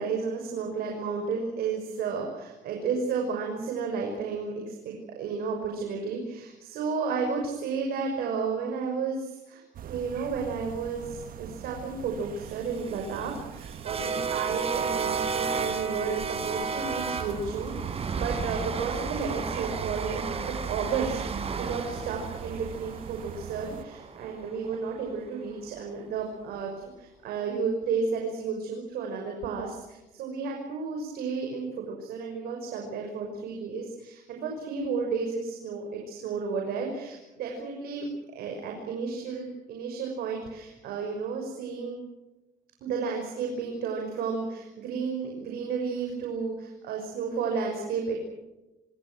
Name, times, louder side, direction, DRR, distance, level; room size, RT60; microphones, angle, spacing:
voice 1, 0.0-26.7 27.0-42.0 42.8-48.2, right 5 dB, 85° right, 2 dB, 6.1 m, -32 dB
sound 1, 9.7-23.8, right 9 dB, 65° right, 1.6 m, -43 dB
sound 2, 12.6-24.8, right 5 dB, 40° right, 4.3 m, -33 dB
27.0 x 26.0 x 6.3 m, 1.0 s
cardioid pair, 120°, 15 cm